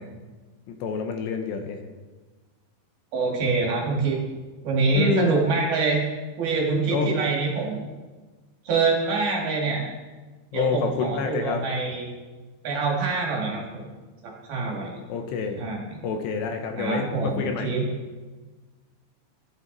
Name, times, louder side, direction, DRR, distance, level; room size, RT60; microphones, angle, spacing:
voice 1, 0.7-1.8 5.0-5.3 6.9-7.1 10.5-11.7 15.1-15.6 16.0-17.7, left 5 dB, 75° left, 5 dB, 3.0 m, -27 dB
voice 2, 3.1-4.2 4.6-6.0 6.4-7.9 8.7-9.8 10.5-12.1 12.6-13.8 14.2-15.0 15.6-16.0 16.8-17.8, right 4 dB, 60° right, -2 dB, 3.8 m, -25 dB
16.0 x 11.0 x 4.0 m, 1.3 s
omnidirectional pair, 5.4 m